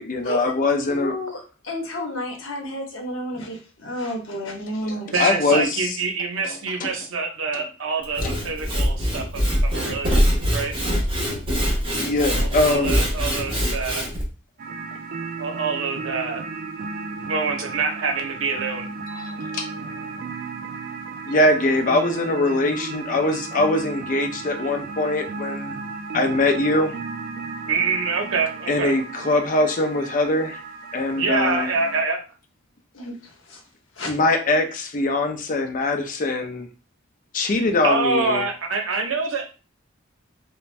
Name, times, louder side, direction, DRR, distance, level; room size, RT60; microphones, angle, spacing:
voice 1, 0.0-1.1 4.8-5.9 6.4-6.5 6.8-6.9 7.5-7.6 8.2-8.4 10.1-10.2 12.0-13.0 19.1-20.1 21.3-25.8 26.1-27.0 28.7-30.6 30.9-31.7 34.1-36.7 37.3-38.4, left 2 dB, 40° left, 6 dB, 0.5 m, -22 dB
voice 2, 0.8-5.3 32.9-33.6 34.0-34.1, left 1 dB, 75° left, 1 dB, 0.9 m, -31 dB
voice 3, 5.1-10.3 10.5-10.7 12.4-14.1 15.4-16.4 17.1-18.9 27.7-28.9 31.2-32.2 37.8-39.5, right 4 dB, 85° right, 4 dB, 0.6 m, -26 dB
Sawing / Wood, 8.0-14.2, equal, 25° right, 0.8 m, -23 dB
sound 1, 14.6-32.0, right 4 dB, 45° right, 0.3 m, -34 dB
2.5 x 2.1 x 3.1 m, 0.34 s
head